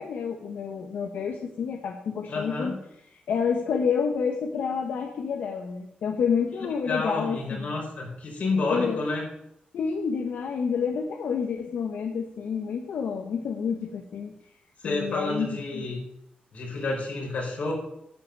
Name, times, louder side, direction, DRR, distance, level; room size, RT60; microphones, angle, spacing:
voice 1, 0.0-2.7 3.3-7.7 8.7-9.0 9.7-14.3 14.8-15.8, left 6 dB, 85° left, 3 dB, 1.2 m, -29 dB
voice 2, 2.3-2.8 6.8-9.2 14.8-16.0 16.5-17.7, left 3 dB, 60° left, -2 dB, 5.4 m, -29 dB
11.0 x 6.1 x 8.7 m, 0.78 s
wide cardioid pair, 140°, 3 cm